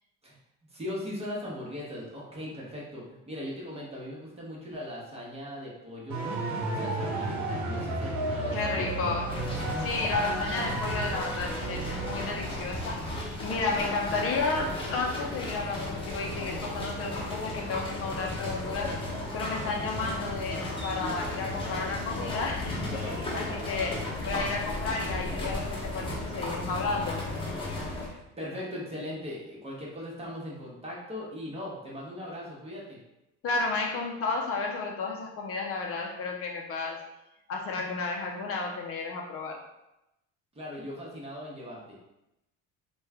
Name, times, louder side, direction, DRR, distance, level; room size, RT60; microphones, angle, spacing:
voice 1, 0.7-6.2 6.6-9.5 27.9-33.0 40.5-42.0, left 1 dB, 20° right, -4 dB, 0.9 m, -39 dB
sound 1, 6.1-12.6, right 2 dB, 60° right, 0.9 m, -33 dB
voice 2, 8.5-9.3 9.8-13.1 13.4-27.2 33.4-37.0 37.5-39.6, left 3 dB, 45° left, 0 dB, 0.5 m, -32 dB
sound 2, 9.3-28.1, left 1 dB, 15° left, 1.0 m, -35 dB
3.0 x 2.2 x 3.5 m, 0.91 s
cardioid pair, 120°, 31 cm